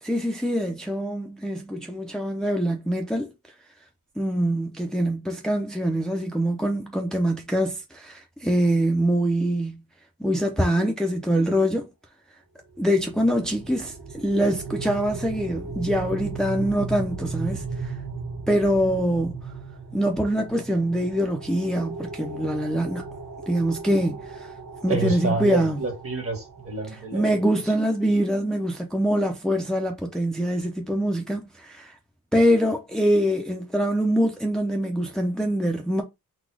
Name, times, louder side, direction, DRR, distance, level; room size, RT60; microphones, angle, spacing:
voice 1, 0.0-3.3 4.2-9.8 10.2-11.9 12.8-17.9 18.5-19.4 19.9-23.0 23.5-24.5 24.8-25.8 26.9-31.9 32.3-36.0, equal, ahead, 0.7 m, -24 dB
sound 1, 12.8-27.7, right 4 dB, 85° right, 1.7 m, -37 dB
voice 2, 24.9-27.3, right 4 dB, 40° right, 1.8 m, -28 dB
4.1 x 2.4 x 4.7 m
wide cardioid pair, 110°, 35 cm